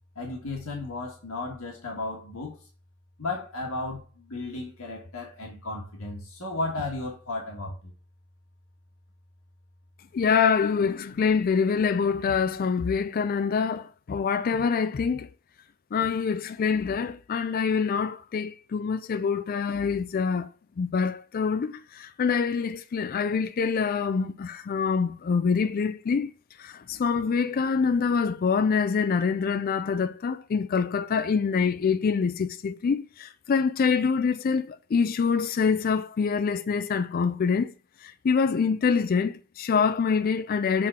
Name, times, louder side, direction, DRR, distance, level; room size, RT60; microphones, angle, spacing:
voice 1, 0.1-2.7 3.2-7.9 10.2-10.3, left 2 dB, 85° left, 1.6 m, -34 dB
voice 2, 10.1-15.3 15.9-20.5 20.8-26.3 26.6-37.7 38.0-40.9, left 5 dB, 45° left, 0.3 m, -25 dB
7.5 x 3.7 x 4.3 m
head